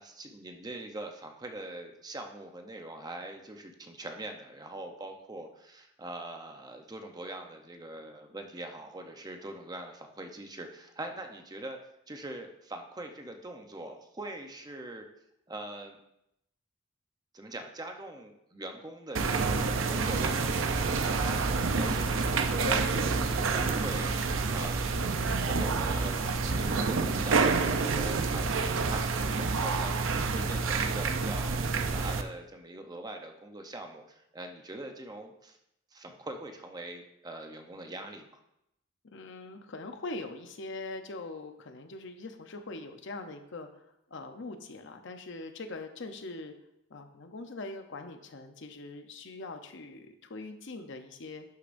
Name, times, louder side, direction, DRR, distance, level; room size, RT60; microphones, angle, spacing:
voice 1, 0.0-11.8 12.1-15.1 15.5-16.0 17.3-24.1 24.5-35.6 35.9-38.4, right 1 dB, 20° right, 4 dB, 0.8 m, -43 dB
sound 1, 19.1-32.2, right 4 dB, 70° right, 0.6 m, -28 dB
voice 2, 39.0-46.5 46.9-51.4, left 2 dB, 65° left, 6 dB, 0.8 m, -42 dB
11.5 x 6.7 x 2.6 m, 0.82 s
head